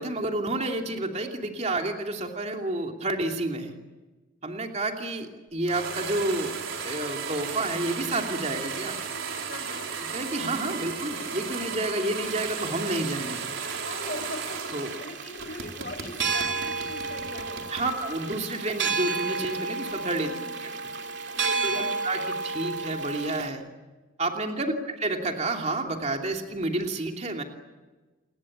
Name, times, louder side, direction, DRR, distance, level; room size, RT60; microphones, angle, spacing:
voice 1, 0.0-3.8 4.4-6.6 6.8-9.0 10.1-13.5 14.7-14.9 17.7-20.3 20.6-20.9 21.4-23.6 24.2-27.4, right 2 dB, 35° right, 3 dB, 2.8 m, -30 dB
sound 1, 5.7-15.1 15.4-17.9, right 5 dB, 80° right, 4.4 m, -35 dB
voice 2, 9.5-9.9 13.8-17.8 20.2-20.7 21.3-22.0 24.6-24.7, left 2 dB, 45° left, 4 dB, 6.4 m, -41 dB
sound 2, 12.2-23.5, right 4 dB, 60° right, 2.6 m, -32 dB
29.5 x 21.0 x 8.8 m, 1.2 s
head